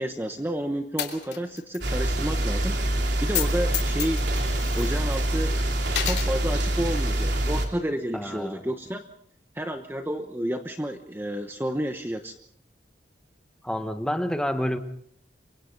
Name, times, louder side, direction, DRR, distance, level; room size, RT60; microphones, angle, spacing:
voice 1, 0.0-2.7 3.2-4.2 4.7-9.0 9.5-12.3, right 1 dB, 10° right, 1.0 m, -30 dB
Coin (dropping), 1.0-1.9 2.1-2.2 3.2-3.5 3.7-5.4 5.9-6.3, left 11 dB, 70° left, 2.9 m, -31 dB
sound 1, 1.8-7.7, right 1 dB, 75° right, 3.3 m, -25 dB
voice 2, 8.1-8.7 13.6-14.8, equal, 5° left, 1.3 m, -28 dB
28.5 x 23.5 x 4.0 m
head